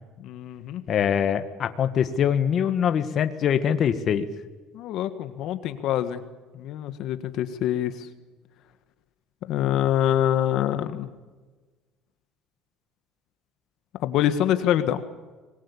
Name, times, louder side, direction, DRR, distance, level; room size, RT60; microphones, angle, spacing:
voice 1, 0.2-0.8 4.7-6.2 6.5-8.1 9.5-11.1 14.0-15.0, left 11 dB, 60° left, 10 dB, 1.6 m, -25 dB
voice 2, 0.9-4.3, left 8 dB, 40° left, 9 dB, 1.6 m, -23 dB
25.5 x 21.0 x 8.5 m, 1.3 s
cardioid pair, 135°, 0 cm